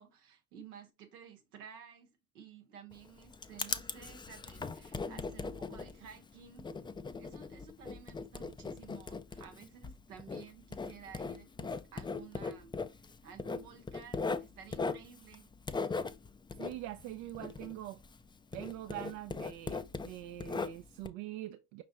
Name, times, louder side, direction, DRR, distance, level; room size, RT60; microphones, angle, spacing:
voice 1, 0.0-6.7 7.2-12.7 13.2-15.5, right 7 dB, 90° right, 1.0 m, -54 dB
Writing, 2.9-18.3 18.5-21.1, left 4 dB, 10° left, 0.3 m, -39 dB
voice 2, 16.6-18.0 18.5-21.8, right 14 dB, 70° right, 0.6 m, -43 dB
5.2 x 3.4 x 2.9 m
hypercardioid pair, 55°, 44 cm